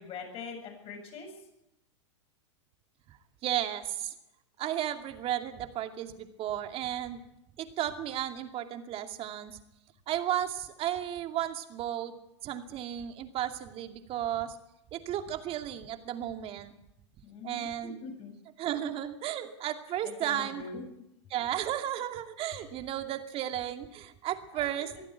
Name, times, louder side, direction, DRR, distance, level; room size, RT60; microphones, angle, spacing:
voice 1, 0.0-1.5 17.2-18.3 20.0-20.8 22.6-22.7 24.5-24.7 24.9-25.0, left 5 dB, 40° left, 3 dB, 7.9 m, -43 dB
voice 2, 3.4-4.1 4.6-7.2 7.6-9.6 10.1-12.1 12.4-14.6 14.9-16.7 17.4-18.0 18.6-20.6 21.3-24.9, right 11 dB, 40° right, 6 dB, 2.5 m, -34 dB
23.0 x 15.0 x 8.3 m, 0.87 s
hypercardioid pair, 100°, 15 cm